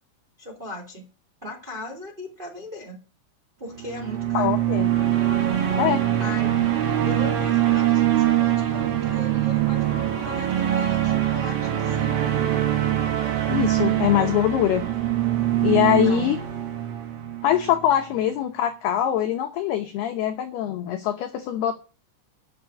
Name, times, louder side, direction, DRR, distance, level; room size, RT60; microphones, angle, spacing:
voice 1, 0.4-1.0 1.4-3.0 3.6-4.6 6.2-6.8 7.0-12.1 16.0-16.5 18.2-18.3, left 1 dB, 15° right, 0 dB, 1.7 m, -38 dB
sound 1, 3.7-17.9, right 12 dB, 75° right, 4.2 m, -23 dB
voice 2, 4.3-4.9 5.8-6.0 13.5-14.8 15.6-16.4 17.4-21.8, left 11 dB, 80° left, 5 dB, 2.3 m, -23 dB
9.6 x 7.3 x 8.8 m, 0.35 s
omnidirectional pair, 5.9 m